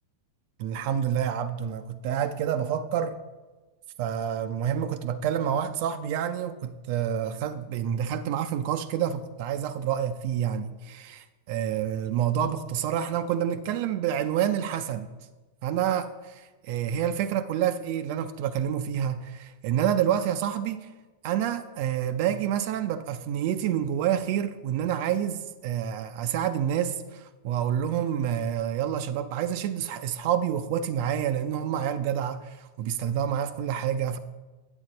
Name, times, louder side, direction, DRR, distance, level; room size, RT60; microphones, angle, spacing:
voice 1, 0.6-3.2 4.0-15.1 15.6-20.9 21.2-34.2, right 9 dB, 45° right, 0.4 m, -28 dB
8.9 x 7.9 x 4.0 m
figure-of-eight pair, 90°, 0 cm